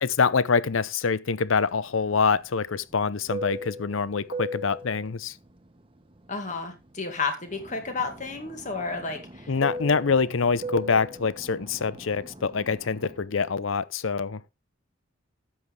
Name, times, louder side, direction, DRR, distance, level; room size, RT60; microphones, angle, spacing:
voice 1, 0.0-5.3 9.5-14.4, left 5 dB, 75° left, 0.6 m, -25 dB
Fixed-wing aircraft airplane, 1.7-7.1 7.4-13.3, equal, 25° right, 1.4 m, -39 dB
voice 2, 6.3-9.5, left 4 dB, 40° left, 2.1 m, -32 dB
12.5 x 8.4 x 3.3 m
head